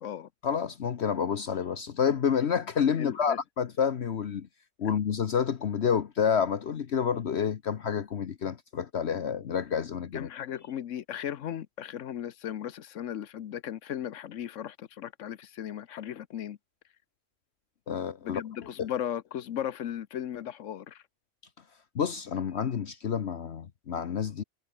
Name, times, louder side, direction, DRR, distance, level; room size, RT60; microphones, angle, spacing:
voice 1, 0.4-4.5 4.8-10.3 17.9-18.4 18.8-18.9 21.9-24.4, left 7 dB, 60° left, 1.2 m, -29 dB
voice 2, 3.0-3.4 10.1-16.6 18.2-21.0, left 10 dB, 80° left, 1.2 m, -36 dB
omnidirectional pair, 1.3 m